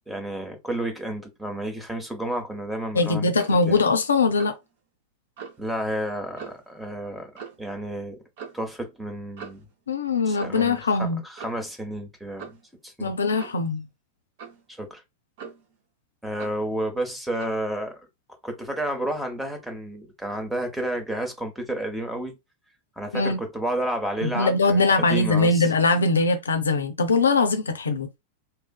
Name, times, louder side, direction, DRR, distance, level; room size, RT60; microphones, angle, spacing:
voice 1, 0.1-3.3 3.7-3.9 5.6-7.3 7.6-8.2 8.5-9.7 10.2-12.5 12.8-13.1 14.8-15.0 16.2-17.9 18.4-22.3 23.0-25.7, right 1 dB, 5° right, 0.7 m, -31 dB
voice 2, 2.9-4.5 9.9-11.2 13.0-13.9 23.1-23.4 24.2-28.2, left 3 dB, 70° left, 0.3 m, -22 dB
Clock, 3.3-3.6 4.4-4.7 5.4-5.6 6.4-6.7 7.4-7.7 8.4-8.6 9.4-9.7 10.4-10.7 11.4-11.7 12.4-12.6 13.4-13.7 14.4-14.6 15.4-15.8 16.4-16.7 17.4-17.6, right 6 dB, 50° right, 0.6 m, -41 dB
2.6 x 2.4 x 2.2 m
figure-of-eight pair, 90°, 0 cm